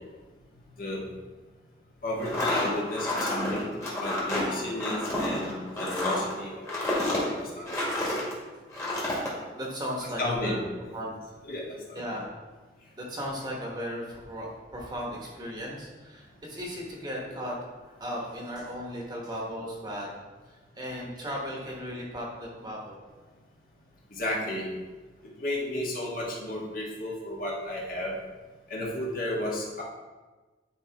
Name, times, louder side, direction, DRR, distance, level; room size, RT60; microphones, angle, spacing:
voice 1, 2.0-3.7 4.0-5.5 5.8-6.6 7.0-7.7 10.2-10.6 11.4-12.0 24.1-24.7 25.4-28.1 28.7-29.8, left 1 dB, 50° left, -4 dB, 1.6 m, -33 dB
sound 1, 2.2-8.3 8.7-9.3, left 1 dB, 15° left, 1.7 m, -29 dB
voice 2, 9.5-11.3 11.9-12.3 13.0-20.1 20.4-22.9, equal, 25° right, -2 dB, 1.2 m, -36 dB
9.7 x 4.6 x 3.5 m, 1.3 s
head